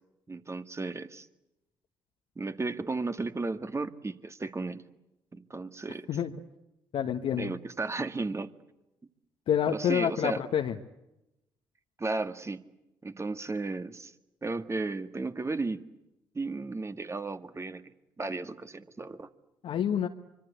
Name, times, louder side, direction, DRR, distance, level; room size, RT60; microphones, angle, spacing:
voice 1, 0.3-1.3 2.4-4.8 5.3-6.1 7.4-8.5 9.7-10.4 12.0-12.6 13.0-14.1 14.4-15.8 16.3-17.8 18.2-19.3, right 3 dB, 25° right, 10 dB, 2.0 m, -34 dB
voice 2, 6.9-7.5 9.5-10.7 19.6-20.1, left 9 dB, 60° left, 3 dB, 1.4 m, -28 dB
25.5 x 24.5 x 8.2 m, 0.90 s
hypercardioid pair, 50°, 11 cm